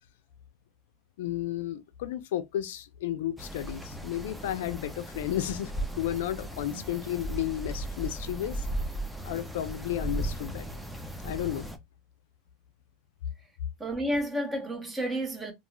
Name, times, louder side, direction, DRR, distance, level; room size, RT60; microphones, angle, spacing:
voice 1, 1.2-5.7 6.0-8.6 9.2-10.8 11.2-11.7, left 12 dB, 85° left, 0.4 m, -33 dB
sound 1, 3.4-11.8, right 1 dB, ahead, 0.5 m, -36 dB
voice 2, 13.8-15.5, equal, 15° right, 0.8 m, -31 dB
2.3 x 2.2 x 3.1 m
supercardioid pair, 145°, 0 cm